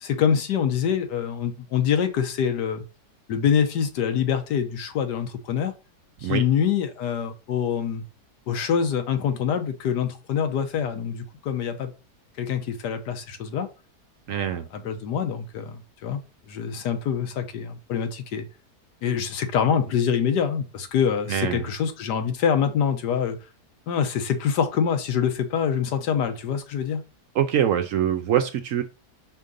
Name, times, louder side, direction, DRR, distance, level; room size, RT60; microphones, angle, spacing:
voice 1, 0.0-2.8 3.3-5.7 6.2-8.0 8.5-11.9 12.4-13.7 14.3-16.2 16.5-18.5 19.0-23.4 23.9-27.0, left 7 dB, 80° left, 1.5 m, -25 dB
voice 2, 14.3-14.7 21.3-21.6 27.3-28.8, right 10 dB, 65° right, 0.8 m, -24 dB
5.1 x 3.7 x 5.2 m
omnidirectional pair, 1.8 m